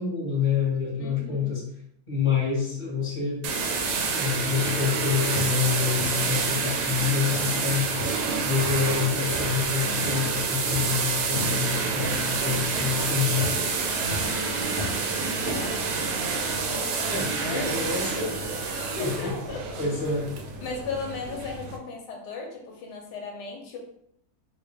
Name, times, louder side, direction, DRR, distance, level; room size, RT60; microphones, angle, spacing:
voice 1, 0.0-1.6 2.1-3.5 4.1-7.9 8.4-13.5 17.1-19.3 19.8-20.3, left 6 dB, 20° left, -6 dB, 1.2 m, -27 dB
voice 2, 1.0-1.5 12.8-13.4 14.5-15.9 16.6-17.9 18.6-19.6 20.6-23.8, left 4 dB, 85° left, 0 dB, 1.3 m, -37 dB
sound 1, 3.4-21.8, right 4 dB, 70° right, 0.9 m, -28 dB
sound 2, 3.5-4.3 4.7-4.9 5.3-6.3 6.6-7.6 7.9-8.3 8.6-9.0 9.3-9.7 10.0-10.4 10.6-11.0 11.4-12.4 12.6-13.0 13.3-13.7 14.1-15.1 15.4-15.8 16.5-16.6, left 1 dB, 45° left, 0.7 m, -36 dB
3.2 x 2.5 x 3.4 m, 0.72 s
omnidirectional pair, 1.8 m